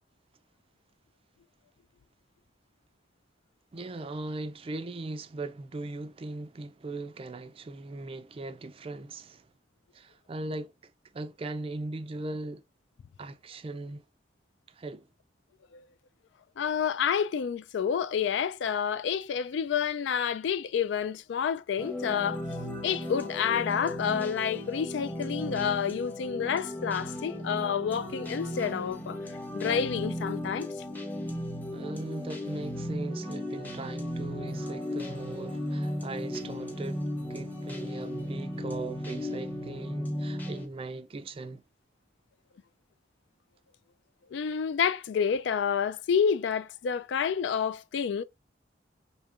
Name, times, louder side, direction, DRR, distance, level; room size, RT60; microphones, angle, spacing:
voice 1, 3.7-9.5 9.9-12.6 13.2-14.0 14.8-15.1 31.7-41.6, right 2 dB, 30° right, 0.4 m, -39 dB
voice 2, 16.6-22.4 22.8-29.2 29.5-30.7 44.3-48.2, left 7 dB, 75° left, 0.3 m, -29 dB
sound 1, 21.8-40.7, left 1 dB, 10° left, 0.8 m, -36 dB
4.8 x 2.8 x 2.4 m
head